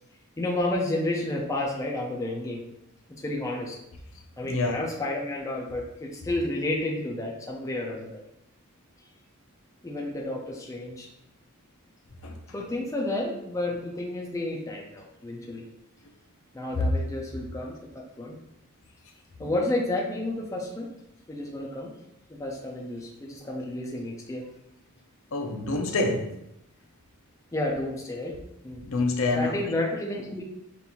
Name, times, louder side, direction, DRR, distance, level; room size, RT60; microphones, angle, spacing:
voice 1, 0.4-2.6 3.2-3.8 4.4-8.2 9.0-9.1 9.8-11.1 12.5-15.7 16.5-17.8 18.2-18.4 19.4-20.9 21.3-21.9 22.3-24.5 27.5-28.4 28.6-28.8 29.3-30.4, left 1 dB, 15° left, -1 dB, 0.5 m, -31 dB
voice 2, 4.4-4.7 12.2-12.4 25.3-26.3 28.8-29.5, left 2 dB, 65° left, 2 dB, 0.6 m, -26 dB
5.3 x 2.6 x 2.9 m, 0.82 s
head